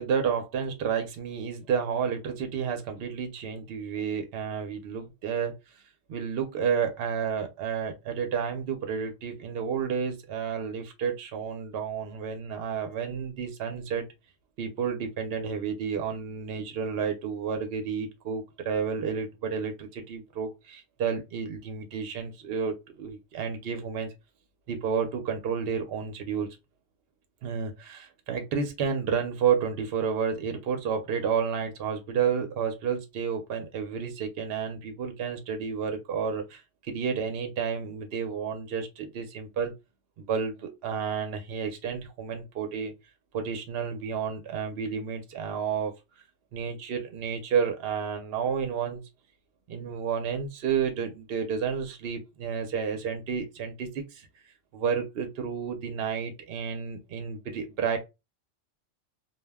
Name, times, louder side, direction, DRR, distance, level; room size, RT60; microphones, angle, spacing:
voice 1, 0.0-5.6 6.1-14.1 14.6-24.1 24.7-26.6 27.4-36.6 36.9-39.7 40.2-42.9 43.3-45.9 46.5-49.0 49.7-54.3 54.7-58.0, right 6 dB, 65° right, 0.7 m, -31 dB
2.3 x 2.0 x 3.4 m
omnidirectional pair, 1.3 m